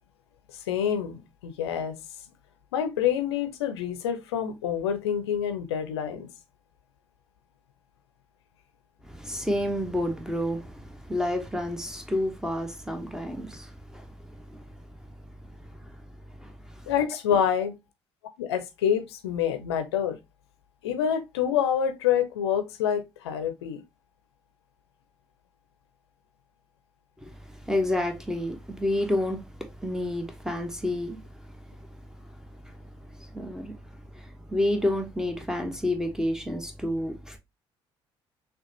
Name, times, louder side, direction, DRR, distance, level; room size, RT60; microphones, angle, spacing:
voice 1, 0.5-2.0 2.7-6.3 16.9-17.8 18.4-20.2 20.8-23.8, left 9 dB, 70° left, 0.6 m, -27 dB
voice 2, 9.1-14.1 14.5-14.6 16.4-16.5 27.2-27.3 27.7-31.2 33.2-33.7 34.2-37.4, left 1 dB, 5° right, 1.0 m, -29 dB
6.2 x 2.4 x 2.8 m
figure-of-eight pair, 50°, 14 cm